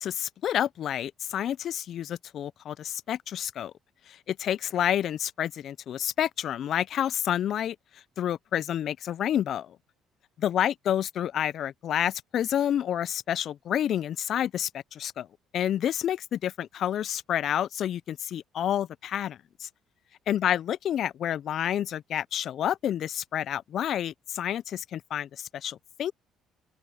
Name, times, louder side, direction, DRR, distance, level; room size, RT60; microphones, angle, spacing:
voice 1, 0.0-3.7 4.1-7.8 8.2-9.8 10.4-15.3 15.5-19.7 20.3-26.1, left 10 dB, 55° left, 0.3 m, -29 dB
open air
cardioid pair, 105°, 0 cm